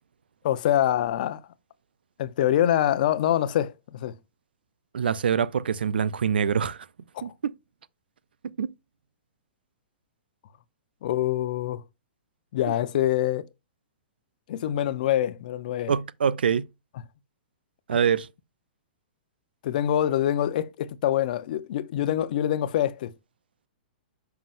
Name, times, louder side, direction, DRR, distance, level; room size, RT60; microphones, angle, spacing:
voice 1, 0.4-1.4 2.2-4.2 7.1-7.3 11.0-11.8 12.5-13.5 14.5-15.9 19.6-23.1, left 11 dB, 60° left, 0.7 m, -25 dB
voice 2, 4.9-6.8 7.2-7.5 8.6-8.7 12.7-12.8 15.9-16.6 17.9-18.3, right 7 dB, 90° right, 0.5 m, -24 dB
7.4 x 5.7 x 2.5 m
hypercardioid pair, 135°, 5 cm